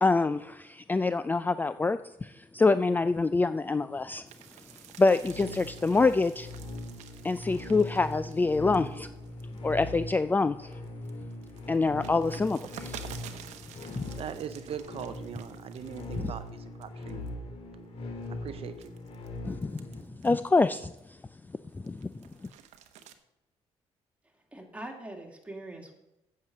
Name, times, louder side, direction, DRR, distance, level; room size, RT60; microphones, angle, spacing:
voice 1, 0.0-4.2 5.0-6.5 7.2-9.1 9.6-10.7 11.7-13.0 14.0-14.1 16.2-16.3 19.4-19.9 20.2-20.9 21.8-22.2, left 3 dB, 15° left, 0.4 m, -26 dB
sound 1, 4.2-10.2 10.6-16.5 16.8-17.3 17.9-21.2 21.6-23.1, right 9 dB, 85° right, 0.9 m, -50 dB
sound 2, 5.2-20.0, left 2 dB, 60° left, 2.0 m, -41 dB
voice 2, 13.9-17.2 18.3-18.9, right 8 dB, 60° right, 0.6 m, -40 dB
voice 3, 24.2-25.9, right 1 dB, 10° right, 2.3 m, -43 dB
8.5 x 6.7 x 7.3 m
cardioid pair, 90°, 11 cm